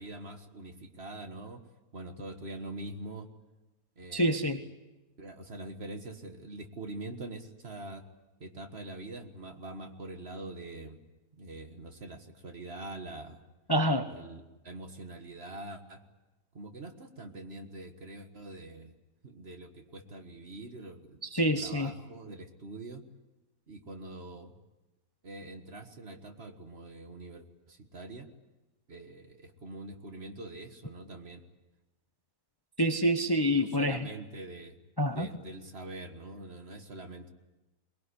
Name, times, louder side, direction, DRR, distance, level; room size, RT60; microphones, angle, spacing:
voice 1, 0.0-1.6 1.9-3.3 4.0-4.5 5.2-8.0 8.4-11.0 11.3-13.4 14.1-16.0 16.5-18.9 19.2-23.0 23.7-24.5 25.2-28.3 28.9-31.4 33.5-34.8 35.0-37.3, right 2 dB, 40° right, 6 dB, 1.8 m, -44 dB
voice 2, 4.1-4.6 13.7-14.1 21.2-21.9 32.8-34.1 35.0-35.3, equal, 15° left, 7 dB, 1.0 m, -27 dB
23.0 x 20.5 x 9.9 m, 1.0 s
omnidirectional pair, 1.6 m